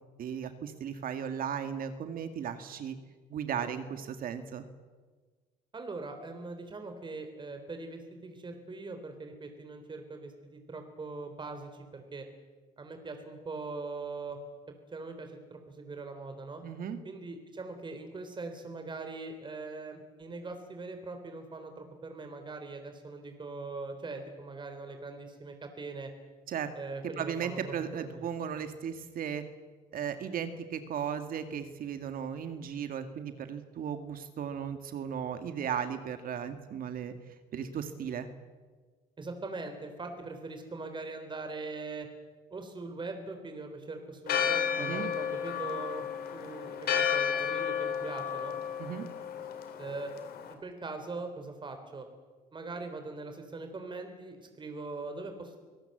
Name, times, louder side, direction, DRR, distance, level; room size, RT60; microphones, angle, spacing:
voice 1, 0.2-3.0 3.3-4.7 16.6-17.0 26.5-26.7 27.2-29.4 29.9-37.1 37.5-38.3 44.8-45.1 48.8-49.1, right 8 dB, 60° right, 8 dB, 1.9 m, -36 dB
voice 2, 5.7-12.3 12.8-14.4 14.7-16.6 17.0-26.1 26.7-27.6 28.0-28.3 39.2-42.1 42.5-46.1 46.3-48.6 49.8-50.1 50.5-52.1 52.5-55.6, right 3 dB, 30° right, 6 dB, 3.6 m, -41 dB
Church bell, 44.3-50.5, left 8 dB, 65° left, 3.2 m, -32 dB
25.5 x 17.5 x 7.8 m, 1.4 s
cardioid pair, 110°, 17 cm